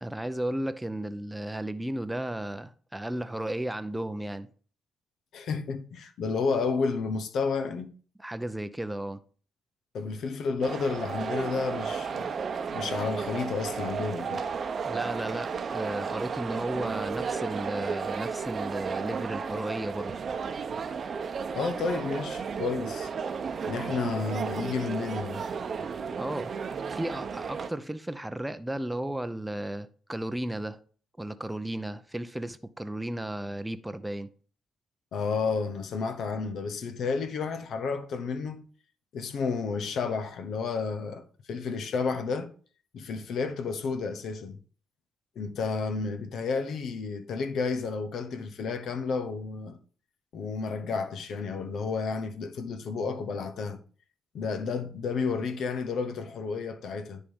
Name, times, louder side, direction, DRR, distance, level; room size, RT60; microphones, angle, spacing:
voice 1, 0.0-4.5 8.2-9.2 14.8-20.1 26.2-26.5 26.9-30.8 31.2-34.3, right 1 dB, 10° right, 0.6 m, -34 dB
voice 2, 5.3-7.9 9.9-12.3 12.7-14.4 21.5-23.1 23.6-25.4 35.1-38.7 39.1-42.5 42.9-44.6 45.3-49.8 50.3-53.8 54.3-57.2, left 4 dB, 70° left, 1.0 m, -31 dB
sound 1, 10.6-27.7, right 6 dB, 50° right, 0.8 m, -33 dB
10.0 x 3.6 x 5.5 m
cardioid pair, 90°, 0 cm